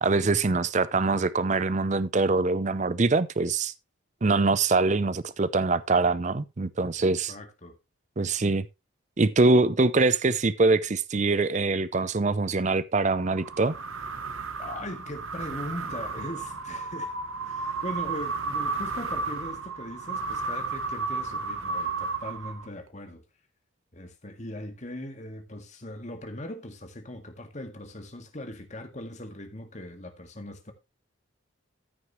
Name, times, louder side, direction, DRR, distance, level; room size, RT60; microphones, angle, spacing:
voice 1, 0.0-3.7 4.2-7.3 8.2-8.7 9.2-13.8, right 3 dB, 35° right, 0.5 m, -24 dB
voice 2, 7.0-7.8 14.6-17.1 17.5-23.2 23.9-30.7, left 1 dB, 35° left, 1.9 m, -40 dB
sound 1, 13.1-22.9, right 4 dB, 85° right, 1.2 m, -33 dB
14.0 x 6.4 x 3.1 m
head